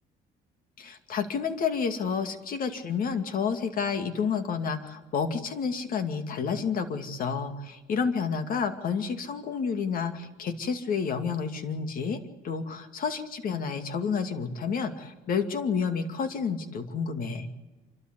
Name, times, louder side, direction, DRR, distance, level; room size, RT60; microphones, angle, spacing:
voice 1, 0.8-12.2 12.4-17.5, left 6 dB, 55° left, 8 dB, 2.4 m, -30 dB
27.5 x 13.0 x 8.2 m, 1.1 s
cardioid pair, 110°, 17 cm